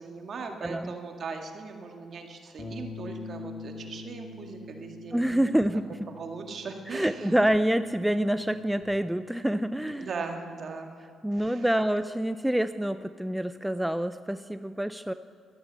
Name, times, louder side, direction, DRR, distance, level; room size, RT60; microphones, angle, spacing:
voice 1, 0.0-5.6 6.1-7.4 9.9-11.0 11.3-11.7, right 4 dB, 55° right, 3 dB, 2.0 m, -39 dB
voice 2, 0.6-0.9 5.1-5.9 6.9-10.1 11.2-15.1, right 1 dB, 5° right, 12 dB, 0.4 m, -27 dB
Bass guitar, 2.6-8.8, left 3 dB, 45° left, 2.0 m, -44 dB
12.5 x 11.0 x 7.6 m, 2.4 s
cardioid pair, 90°, 0 cm